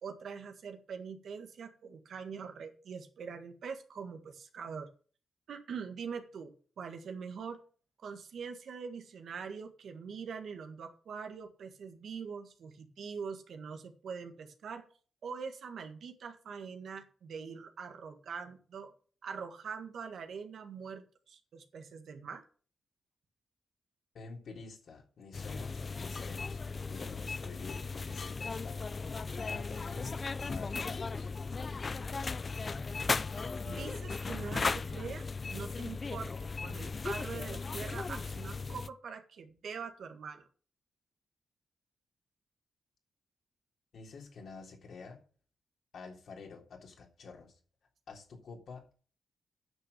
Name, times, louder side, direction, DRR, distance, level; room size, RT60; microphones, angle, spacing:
voice 1, 0.0-4.9 5.5-7.6 8.0-14.8 15.2-18.9 19.2-22.4 33.6-36.3 36.6-40.5, right 6 dB, 75° right, 6 dB, 1.7 m, -43 dB
voice 2, 24.1-26.6 26.9-31.3 43.9-45.2 45.9-47.5 48.1-48.9, left 4 dB, 70° left, 1 dB, 3.4 m, -49 dB
sound 1, 25.3-38.9, left 4 dB, 40° left, 0.5 m, -37 dB
9.6 x 6.3 x 6.8 m, 0.41 s
cardioid pair, 75°, 0 cm